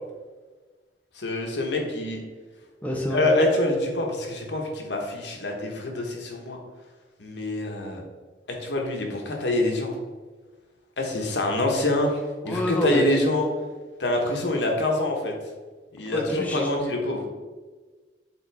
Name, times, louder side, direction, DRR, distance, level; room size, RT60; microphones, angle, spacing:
voice 1, 1.2-2.2 3.1-6.6 7.2-8.0 8.6-10.0 11.0-13.4 14.0-15.3 15.9-17.2, left 1 dB, 75° left, 1 dB, 1.1 m, -25 dB
voice 2, 2.8-3.2 12.4-13.0 16.1-16.7, left 1 dB, 10° left, -1 dB, 0.7 m, -28 dB
7.4 x 4.0 x 3.4 m, 1.4 s
head